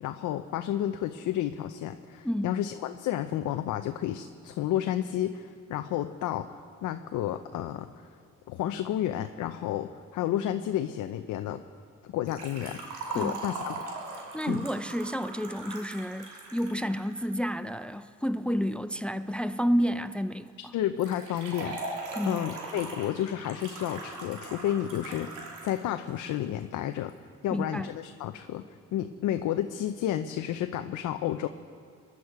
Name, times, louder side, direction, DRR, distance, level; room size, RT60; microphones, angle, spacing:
voice 1, 0.0-8.1 8.5-11.6 12.0-12.8 13.1-13.8 14.5-14.6 20.7-27.1 27.4-28.6 28.9-31.5, left 11 dB, 80° left, 0.6 m, -31 dB
voice 2, 2.2-2.6 13.1-13.4 14.3-20.7 22.2-22.5 27.5-27.9, equal, 5° left, 0.5 m, -30 dB
Liquid, 12.3-17.3 21.0-25.8 26.1-26.2 27.1-27.2, right 3 dB, 85° right, 2.8 m, -40 dB
23.5 x 11.0 x 4.8 m
cardioid pair, 90°, 30 cm